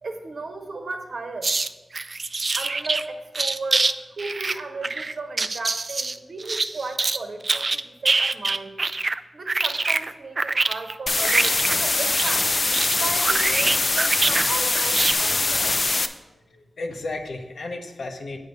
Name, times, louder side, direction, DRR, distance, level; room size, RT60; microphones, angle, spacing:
voice 1, 0.0-1.5 2.5-8.8 9.3-12.5 13.0-15.8, right 3 dB, 60° right, 4 dB, 1.1 m, -35 dB
sound 1, 1.4-1.7 1.9-3.0 3.3-3.9 4.2-7.2 7.4-9.2 9.5-14.5 14.7-15.1, right 3 dB, 40° right, 0.3 m, -25 dB
sound 2, 11.1-16.1, left 2 dB, 40° left, 0.5 m, -22 dB
voice 2, 16.3-18.4, left 2 dB, 80° left, 3 dB, 1.0 m, -34 dB
8.7 x 4.7 x 6.5 m, 1.1 s
wide cardioid pair, 120°, 0 cm